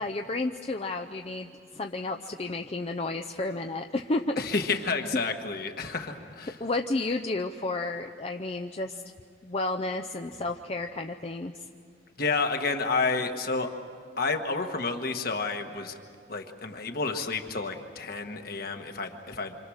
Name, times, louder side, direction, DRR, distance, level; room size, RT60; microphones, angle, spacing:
voice 1, 0.0-4.7 6.6-9.0 9.4-11.5, left 2 dB, 35° left, 5 dB, 0.6 m, -32 dB
voice 2, 4.4-6.5 12.2-13.7 14.2-15.9 16.3-19.6, left 4 dB, 55° left, 5 dB, 1.5 m, -30 dB
26.5 x 26.5 x 6.4 m, 2.3 s
head